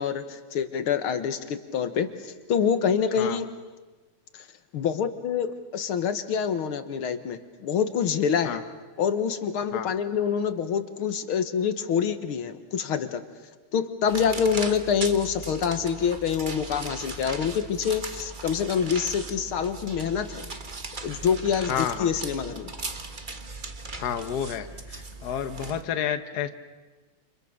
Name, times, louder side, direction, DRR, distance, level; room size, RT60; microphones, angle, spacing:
voice 1, 0.0-3.5 4.3-4.4 4.7-8.6 9.0-13.2 13.7-20.5 21.0-22.7, left 7 dB, 80° left, 10 dB, 2.3 m, -26 dB
sound 1, 14.1-25.8, right 3 dB, 25° right, 1.4 m, -38 dB
voice 2, 21.6-22.1 24.0-26.5, left 9 dB, 50° left, 9 dB, 1.6 m, -30 dB
29.0 x 28.5 x 6.7 m, 1.3 s
omnidirectional pair, 2.4 m